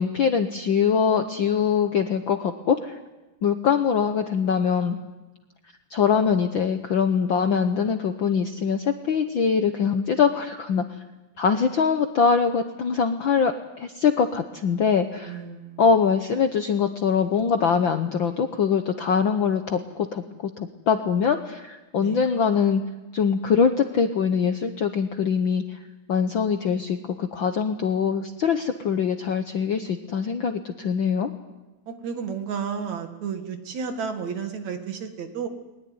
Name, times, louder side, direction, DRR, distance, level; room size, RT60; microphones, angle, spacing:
voice 1, 0.0-3.0 3.4-5.0 5.9-10.8 11.4-15.4 15.8-20.2 20.6-22.8 23.1-25.8 26.1-31.3, left 6 dB, 65° left, 7 dB, 1.2 m, -23 dB
voice 2, 15.2-15.8 22.0-22.2 31.9-35.5, right 6 dB, 70° right, 6 dB, 3.2 m, -32 dB
21.0 x 20.5 x 9.5 m, 1.1 s
omnidirectional pair, 3.4 m